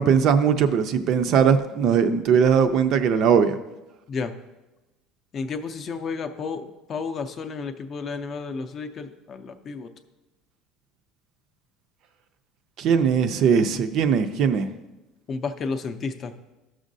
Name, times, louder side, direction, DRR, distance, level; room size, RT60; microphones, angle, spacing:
voice 1, 0.0-3.6 12.8-14.7, right 7 dB, 40° right, 9 dB, 0.4 m, -20 dB
voice 2, 5.3-9.9 15.3-16.3, left 4 dB, 25° left, 7 dB, 0.4 m, -32 dB
13.0 x 6.2 x 2.6 m, 1.0 s
cardioid pair, 170°, 0 cm